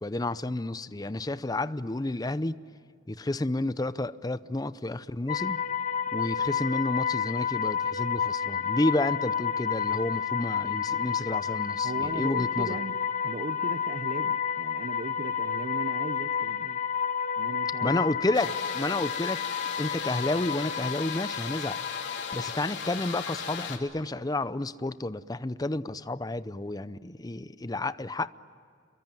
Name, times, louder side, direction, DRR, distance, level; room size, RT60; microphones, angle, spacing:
voice 1, 0.0-2.6 3.1-5.6 6.1-12.8 17.8-19.4 19.8-21.8 22.3-28.3, left 2 dB, 20° left, 0.6 m, -30 dB
sound 1, 5.3-22.5, left 7 dB, 40° left, 1.4 m, -30 dB
voice 2, 11.8-13.0 13.2-16.8 17.4-18.0, right 2 dB, 40° right, 0.7 m, -37 dB
sound 2, 18.3-23.8, left 6 dB, 65° left, 3.1 m, -36 dB
28.5 x 23.0 x 9.2 m
head